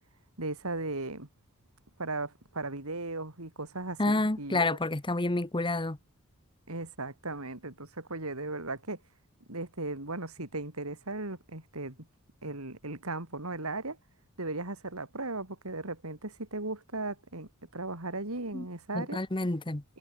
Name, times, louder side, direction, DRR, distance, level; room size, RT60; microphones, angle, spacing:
voice 1, 0.4-1.3 2.0-4.8 6.7-9.0 9.5-11.9 12.4-14.0 14.4-19.2, right 2 dB, 75° right, 4.3 m, -37 dB
voice 2, 4.0-6.0 18.5-18.7 18.9-19.8, left 2 dB, 20° left, 1.1 m, -29 dB
head